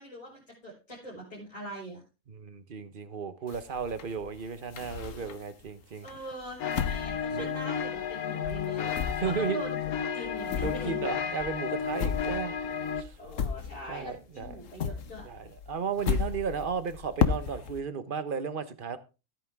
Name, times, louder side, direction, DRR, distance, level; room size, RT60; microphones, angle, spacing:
voice 1, 0.0-2.0 6.0-8.8 9.2-11.1 13.2-15.3, right 1 dB, 25° left, 4.3 m, -42 dB
voice 2, 2.3-6.1 7.3-7.5 8.7-9.6 10.5-12.5 13.0-13.2 13.9-14.6 15.2-19.0, right 6 dB, 40° right, 1.1 m, -34 dB
sound 1, 3.5-5.6 6.1-8.2 8.4-14.1 14.4-17.8, left 7 dB, 65° left, 1.3 m, -34 dB
sound 2, 6.6-13.0, left 7 dB, 85° left, 1.4 m, -33 dB
13.5 x 9.2 x 3.6 m
omnidirectional pair, 1.5 m